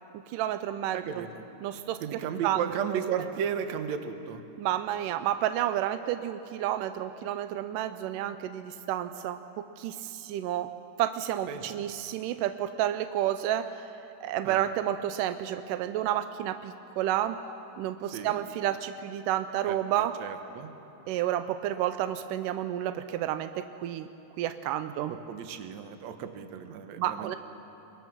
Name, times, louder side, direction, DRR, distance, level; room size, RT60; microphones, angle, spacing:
voice 1, 0.1-1.3 1.6-2.0 2.4-2.6 2.9-3.0 4.6-10.7 11.0-13.7 14.2-17.4 17.8-20.1 21.1-24.1 24.4-25.1 27.0-27.4, right 12 dB, 80° right, 10 dB, 1.9 m, -30 dB
voice 2, 0.9-1.4 2.0-4.4 11.5-11.8 14.4-14.6 18.1-18.4 19.7-19.8 20.2-20.7 25.1-27.4, right 8 dB, 65° right, 7 dB, 1.9 m, -34 dB
26.0 x 22.0 x 6.1 m, 2.9 s
omnidirectional pair, 4.4 m